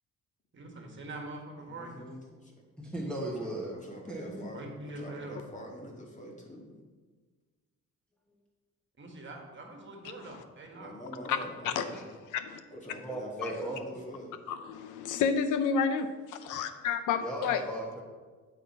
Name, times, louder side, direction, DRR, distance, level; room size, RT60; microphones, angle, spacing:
voice 1, 0.5-1.9 4.3-5.4 9.0-10.9 11.4-12.0, right 2 dB, 40° right, 2 dB, 1.6 m, -44 dB
voice 2, 1.6-2.7 3.4-6.8 10.7-12.0 12.7-14.4, equal, 25° left, 0 dB, 1.7 m, -45 dB
voice 3, 2.8-3.7 4.1-4.5 12.7-14.0 17.2-18.0, right 1 dB, 5° left, -4 dB, 1.1 m, -37 dB
voice 4, 14.5-17.6, left 6 dB, 85° left, 10 dB, 0.6 m, -30 dB
8.9 x 4.3 x 4.2 m, 1.4 s
cardioid pair, 90°, 30 cm